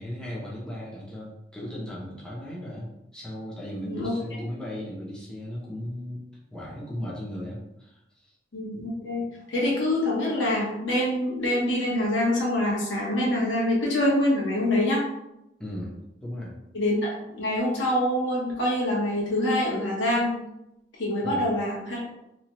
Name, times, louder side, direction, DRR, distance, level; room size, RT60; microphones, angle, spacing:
voice 1, 0.0-6.2 6.5-8.3 15.6-16.5 21.2-21.4, equal, 5° left, -6 dB, 0.6 m, -36 dB
voice 2, 8.5-9.2 9.5-15.0 16.7-20.4 21.0-22.0, left 1 dB, 75° left, -5 dB, 1.0 m, -25 dB
2.9 x 2.2 x 2.9 m, 0.87 s
head